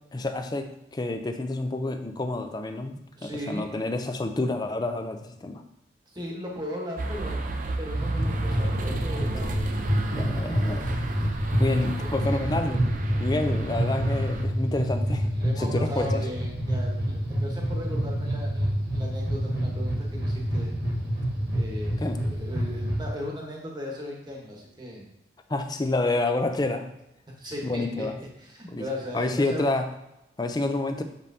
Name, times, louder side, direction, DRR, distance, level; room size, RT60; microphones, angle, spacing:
voice 1, 0.1-5.6 10.1-10.9 11.5-12.8 13.2-15.3 15.6-16.3 22.0-22.2 25.5-26.9 27.6-28.2 28.7-28.9 29.1-29.8 30.4-31.0, left 2 dB, 20° left, 7 dB, 0.4 m, -28 dB
voice 2, 3.2-3.7 6.1-7.4 7.8-9.5 12.0-12.1 15.3-20.7 21.5-25.1 27.3-28.1 28.4-29.6, equal, 20° right, -1 dB, 1.1 m, -37 dB
sound 1, 7.0-14.4, right 2 dB, 45° right, 0.5 m, -33 dB
sound 2, 7.9-23.1, equal, 60° right, 1.3 m, -27 dB
6.7 x 5.3 x 2.7 m, 0.90 s
head